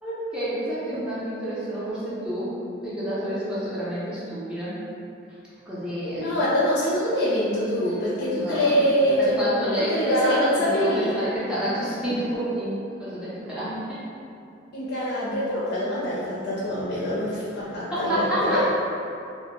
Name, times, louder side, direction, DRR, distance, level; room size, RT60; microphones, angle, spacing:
voice 1, 0.0-4.8 5.7-6.4 8.2-8.7 9.2-14.0 17.9-18.6, right 1 dB, 5° right, -12 dB, 0.4 m, -29 dB
voice 2, 6.2-9.3 9.9-11.2 14.7-18.6, equal, 55° left, -9 dB, 0.4 m, -24 dB
2.1 x 2.0 x 2.9 m, 2.6 s
head